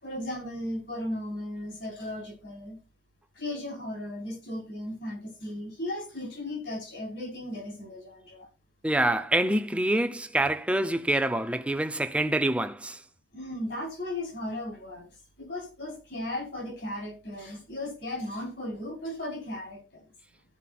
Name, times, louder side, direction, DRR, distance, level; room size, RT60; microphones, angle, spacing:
voice 1, 0.0-2.8 3.4-8.5 13.3-15.1 15.4-20.0, left 1 dB, 70° left, 4.6 m, -36 dB
voice 2, 8.8-13.0, right 1 dB, 5° right, 0.7 m, -26 dB
15.5 x 5.1 x 4.1 m
head